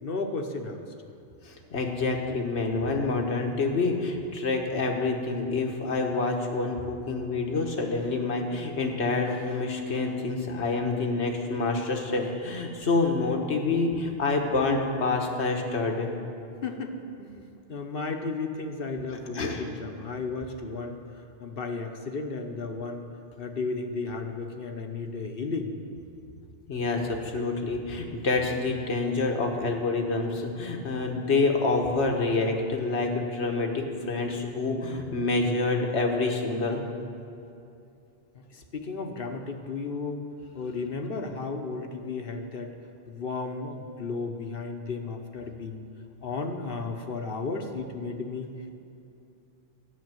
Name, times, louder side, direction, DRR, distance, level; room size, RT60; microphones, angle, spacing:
voice 1, 0.0-0.8 16.6-21.0 21.4-23.1 23.4-25.7 38.3-40.3 40.5-42.7 43.1-45.8 46.2-48.5, left 4 dB, 60° left, 5 dB, 1.1 m, -34 dB
voice 2, 1.4-16.1 19.3-19.6 26.7-36.8, left 3 dB, 80° left, 2 dB, 1.6 m, -27 dB
12.5 x 6.9 x 9.1 m, 2.6 s
omnidirectional pair, 1.1 m